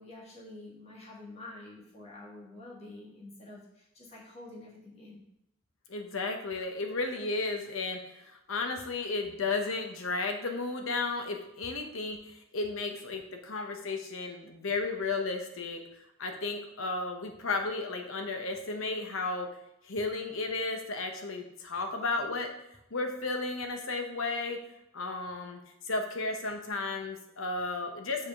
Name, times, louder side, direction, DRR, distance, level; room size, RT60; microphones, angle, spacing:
voice 1, 0.0-5.2, left 2 dB, 30° left, -4 dB, 1.7 m, -48 dB
voice 2, 5.9-15.8 16.2-19.5 19.8-22.5 22.9-24.6 24.9-28.3, left 3 dB, 65° left, 4 dB, 0.9 m, -33 dB
7.4 x 4.9 x 3.6 m, 0.81 s
head